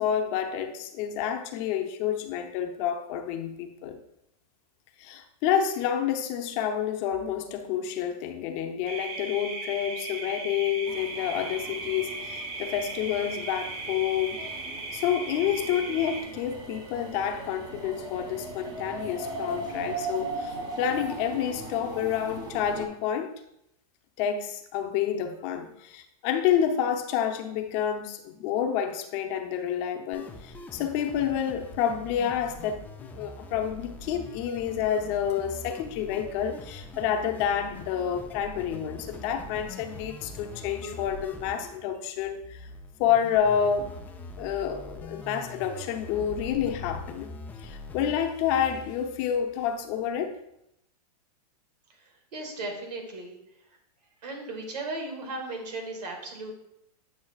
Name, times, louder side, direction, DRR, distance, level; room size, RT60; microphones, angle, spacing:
voice 1, 0.0-4.0 5.0-14.4 14.9-23.3 24.2-32.8 33.1-42.7 43.0-44.0 44.4-47.3 47.6-50.4, left 9 dB, 40° left, 6 dB, 0.8 m, -29 dB
sound 1, 8.8-16.2, right 3 dB, 50° right, 1.5 m, -37 dB
sound 2, 10.9-22.9, right 2 dB, 20° right, 1.0 m, -39 dB
sound 3, 30.1-48.1, left 2 dB, 10° left, 0.4 m, -43 dB
voice 2, 51.9-53.4 54.2-56.5, right 2 dB, 85° right, 2 dB, 2.0 m, -36 dB
8.7 x 6.1 x 2.4 m, 0.79 s
hypercardioid pair, 140°, 20 cm